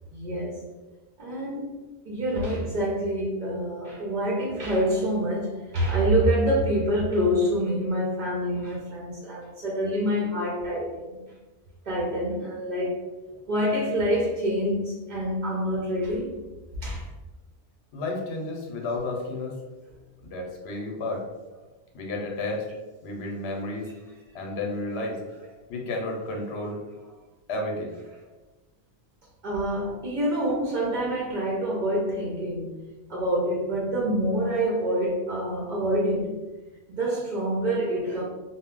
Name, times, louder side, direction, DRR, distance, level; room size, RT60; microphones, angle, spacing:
voice 1, 0.1-0.6 1.2-11.2 11.8-13.0 13.5-16.4 16.8-17.1 25.6-25.7 29.4-32.8 33.1-36.3 36.9-38.2, equal, 50° right, 0.6 m, -26 dB
voice 2, 17.9-19.6 20.2-21.2 21.9-22.6 23.0-23.9 24.3-25.2 25.7-26.8 27.5-28.0, left 2 dB, 75° left, 0.9 m, -31 dB
2.2 x 2.0 x 3.6 m
omnidirectional pair, 1.1 m